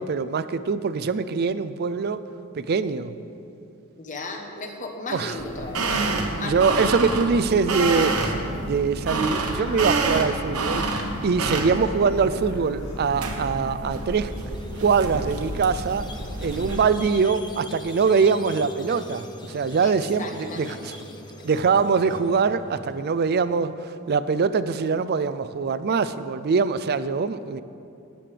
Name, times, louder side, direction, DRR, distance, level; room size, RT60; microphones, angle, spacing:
voice 1, 0.0-2.2 2.6-3.2 5.1-5.4 5.9-6.0 6.4-8.3 8.6-10.8 11.2-14.3 14.8-16.0 16.4-21.0 21.4-27.6, right 5 dB, 45° right, 13 dB, 0.4 m, -23 dB
voice 2, 4.0-6.0 6.3-6.9 19.8-20.9, left 2 dB, 35° left, 3 dB, 1.0 m, -35 dB
sound 1, 5.1-13.6, equal, 55° left, 2.1 m, -38 dB
sound 2, 5.4-16.8, right 3 dB, 75° right, 1.1 m, -28 dB
Squeak, 14.2-23.0, left 1 dB, 20° left, 0.7 m, -42 dB
18.0 x 9.2 x 3.4 m, 2.6 s
head